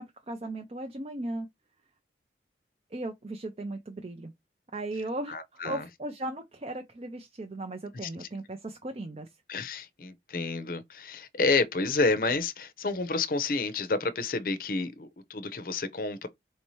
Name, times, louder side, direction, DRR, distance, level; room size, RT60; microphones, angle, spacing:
voice 1, 0.0-1.5 2.9-4.3 4.7-9.3, right 1 dB, 35° right, 0.5 m, -37 dB
voice 2, 5.3-5.9 8.0-8.3 9.5-16.3, left 3 dB, 50° left, 0.6 m, -30 dB
4.4 x 2.8 x 3.0 m
head